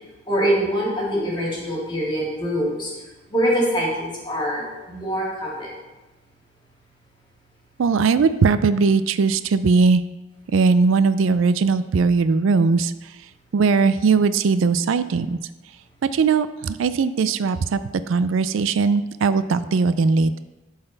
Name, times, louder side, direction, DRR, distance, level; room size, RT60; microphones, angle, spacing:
voice 1, 0.3-2.9 3.3-5.7, equal, 25° left, -4 dB, 2.1 m, -24 dB
voice 2, 7.8-10.0 10.5-12.9 13.5-15.4 16.1-17.8 18.1-20.4, right 4 dB, 85° right, 13 dB, 0.4 m, -19 dB
11.5 x 4.1 x 3.9 m, 1.1 s
head